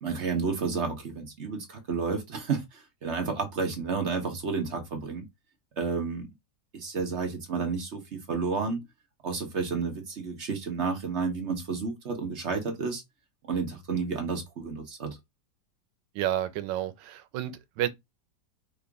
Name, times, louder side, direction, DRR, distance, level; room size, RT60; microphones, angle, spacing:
voice 1, 0.0-5.3 5.8-6.3 6.7-8.8 9.2-13.0 13.4-15.2, right 4 dB, 45° right, 1.1 m, -31 dB
voice 2, 16.1-17.9, right 12 dB, 90° right, 1.3 m, -30 dB
4.9 x 2.5 x 3.5 m
omnidirectional pair, 1.9 m